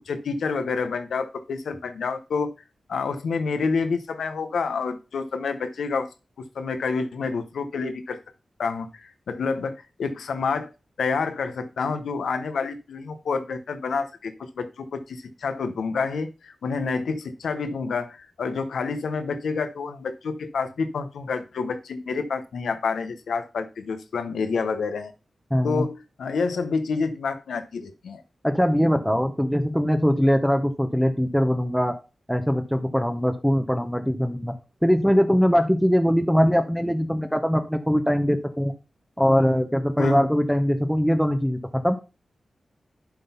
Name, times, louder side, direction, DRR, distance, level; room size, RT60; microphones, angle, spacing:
voice 1, 0.1-2.5 2.9-6.1 6.4-8.2 8.6-10.7 11.0-25.1 25.6-28.2 40.0-40.2, left 4 dB, 90° left, 10 dB, 0.8 m, -28 dB
voice 2, 25.5-25.8 28.4-31.9 32.3-34.5 34.8-38.7 39.2-42.0, equal, ahead, 5 dB, 1.0 m, -21 dB
11.5 x 3.9 x 5.5 m, 0.30 s
cardioid pair, 50°, 0 cm